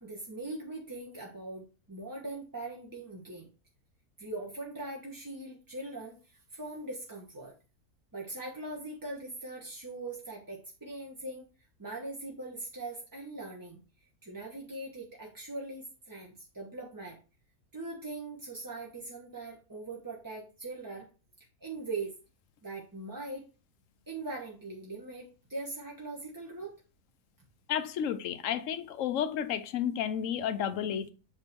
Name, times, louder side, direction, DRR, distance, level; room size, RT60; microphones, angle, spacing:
voice 1, 0.0-3.5 4.2-7.5 8.1-11.5 11.8-13.8 14.2-17.2 17.7-21.1 21.6-22.1 22.6-23.5 24.1-26.7, right 2 dB, 15° right, 0.7 m, -41 dB
voice 2, 27.7-31.1, left 9 dB, 65° left, 0.9 m, -32 dB
7.7 x 3.1 x 4.5 m
omnidirectional pair, 1.6 m